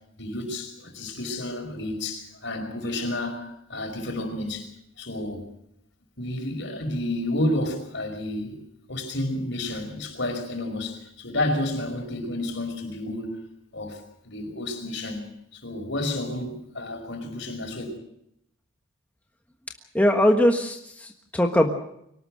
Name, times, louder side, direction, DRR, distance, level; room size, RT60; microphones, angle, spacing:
voice 1, 0.2-4.7 5.0-5.4 6.2-8.6 8.9-13.5 13.7-18.0, left 1 dB, 60° left, 5.5 m, -31 dB
voice 2, 19.9-21.7, left 1 dB, 10° left, 1.4 m, -21 dB
24.0 x 18.5 x 6.5 m
head